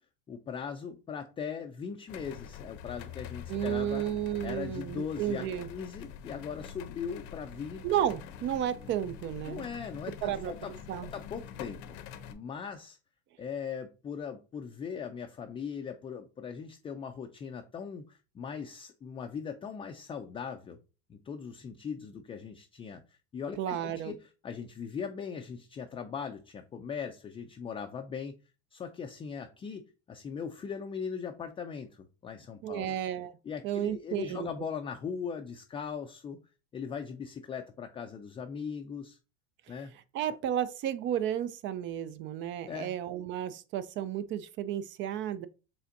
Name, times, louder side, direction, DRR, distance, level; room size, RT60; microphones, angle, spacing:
voice 1, 0.3-4.1 4.4-7.8 9.5-10.7 11.0-12.0 12.3-13.0 13.4-20.8 21.1-28.4 28.7-32.9 33.4-36.4 36.7-39.2 39.7-39.9 40.3-40.4 42.7-42.9, left 6 dB, 20° left, 0.4 m, -39 dB
sound 1, 2.1-12.3, left 8 dB, 65° left, 0.7 m, -45 dB
voice 2, 3.5-5.7 7.8-9.7 10.2-10.5 10.9-11.1 23.6-24.1 32.6-33.4 33.6-34.7 40.1-45.5, right 10 dB, 40° right, 0.5 m, -32 dB
5.6 x 3.4 x 2.6 m
supercardioid pair, 100°, 29 cm